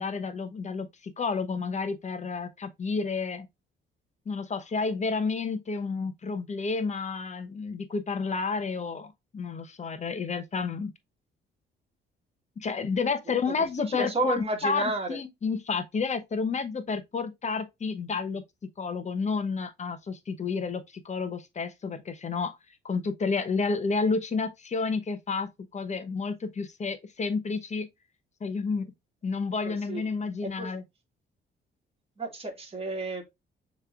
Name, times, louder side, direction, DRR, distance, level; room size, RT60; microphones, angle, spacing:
voice 1, 0.0-3.5 4.3-10.9 12.6-18.4 18.8-22.6 22.8-27.9 28.4-28.9 29.2-30.8, left 4 dB, 35° left, 0.9 m, -30 dB
voice 2, 13.8-15.2 29.7-30.1 30.6-30.7 32.2-33.2, right 2 dB, 30° right, 1.8 m, -31 dB
6.5 x 3.2 x 2.4 m
cardioid pair, 90°, 20 cm